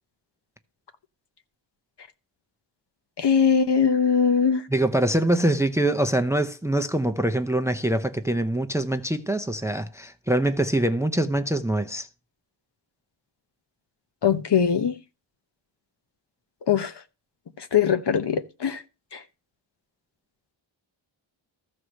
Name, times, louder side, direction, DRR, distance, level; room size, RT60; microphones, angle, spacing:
voice 1, 3.2-4.7 14.2-15.0 16.7-16.9 17.6-18.8 19.1-19.2, left 7 dB, 55° left, 1.0 m, -21 dB
voice 2, 4.7-12.1, right 1 dB, 5° right, 0.6 m, -24 dB
14.0 x 4.8 x 6.3 m
wide cardioid pair, 130°, 47 cm